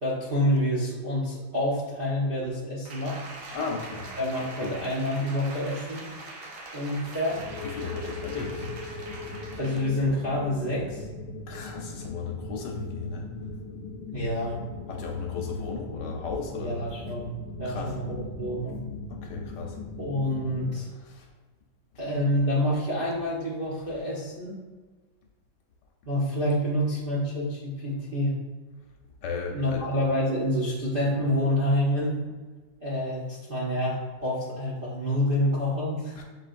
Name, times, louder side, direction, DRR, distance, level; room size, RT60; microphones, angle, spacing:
voice 1, 0.0-3.2 4.2-6.1 6.7-7.4 9.6-11.1 14.1-14.6 16.6-17.3 17.6-18.8 20.0-20.9 22.0-24.6 26.1-28.3 29.5-32.2 32.8-36.2, left 1 dB, 50° right, -8 dB, 0.6 m, -27 dB
Applause, 2.8-10.0 10.4-10.5, right 2 dB, 80° right, 1.5 m, -43 dB
voice 2, 3.5-4.1 4.6-4.8 7.6-8.7 11.5-13.3 14.9-16.8 17.6-18.0 19.1-19.8 21.1-21.3 29.2-29.8 36.2-36.3, left 4 dB, 75° left, 2 dB, 1.1 m, -35 dB
sound 1, 7.3-20.7, left 3 dB, 90° left, 0.7 m, -39 dB
6.4 x 3.1 x 2.5 m, 1.3 s
omnidirectional pair, 2.0 m